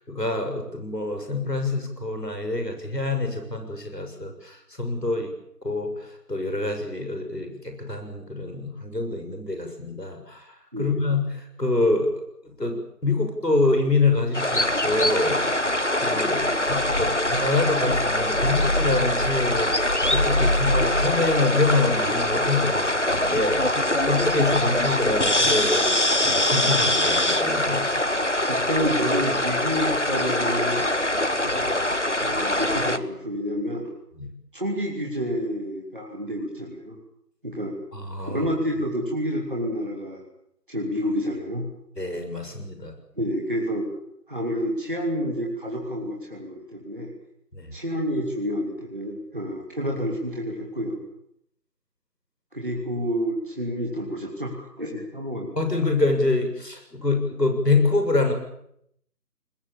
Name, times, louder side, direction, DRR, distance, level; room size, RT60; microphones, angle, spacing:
voice 1, 0.0-5.3 5.6-12.1 12.4-15.4 16.0-25.9 26.2-27.9 34.2-34.3 37.9-38.5 42.0-42.9 47.5-47.7 55.6-58.3, left 3 dB, 80° left, 5 dB, 7.0 m, -26 dB
sound 1, 14.3-33.0, left 1 dB, 45° left, 1.0 m, -23 dB
voice 2, 28.5-30.8 31.4-31.7 32.2-33.9 34.5-37.0 37.4-37.8 38.3-40.2 40.7-41.7 43.2-43.9 44.3-47.1 47.7-51.0 52.5-55.6, equal, 30° right, -1 dB, 3.1 m, -29 dB
23.0 x 20.5 x 8.6 m, 0.74 s
figure-of-eight pair, 175°, 48 cm